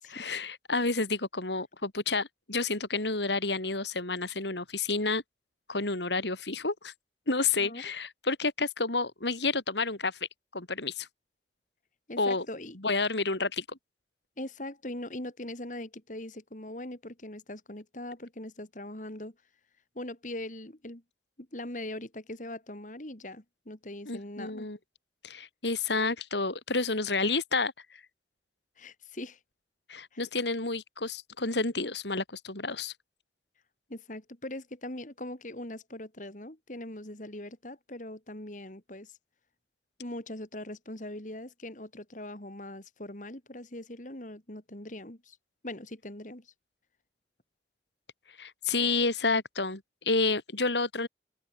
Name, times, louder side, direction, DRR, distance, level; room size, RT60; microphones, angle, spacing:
voice 1, 0.1-5.2 5.7-6.9 7.3-10.2 10.5-11.1 12.2-12.5 12.8-13.8 24.1-24.8 25.2-28.0 29.9-32.9 48.4-51.1, left 3 dB, 85° left, 3.8 m, -30 dB
voice 2, 12.1-12.8 14.4-19.3 19.9-21.0 21.4-24.7 28.8-29.4 30.1-30.2 33.9-39.2 40.0-45.4 45.6-46.5, left 1 dB, 45° left, 2.9 m, -41 dB
open air
head